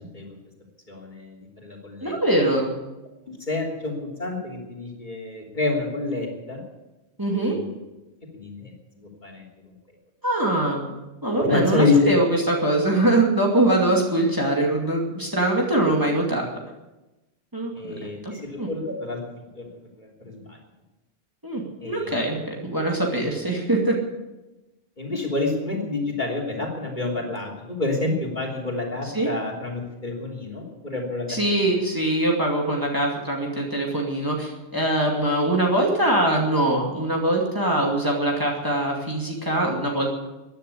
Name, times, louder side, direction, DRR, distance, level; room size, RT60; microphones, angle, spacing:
voice 1, 0.9-2.1 3.5-6.6 7.3-7.6 8.3-8.7 9.2-9.4 11.4-12.1 17.7-19.2 19.5-19.8 20.3-20.4 21.8-22.1 25.0-31.4, left 3 dB, 45° left, 1 dB, 3.4 m, -27 dB
voice 2, 2.0-2.7 7.2-7.6 10.2-11.0 11.2-16.5 17.5-18.3 18.6-18.7 21.4-24.0 29.0-29.3 31.3-40.1, right 1 dB, 20° right, -1 dB, 2.4 m, -23 dB
15.5 x 10.5 x 8.6 m, 1.0 s
omnidirectional pair, 1.1 m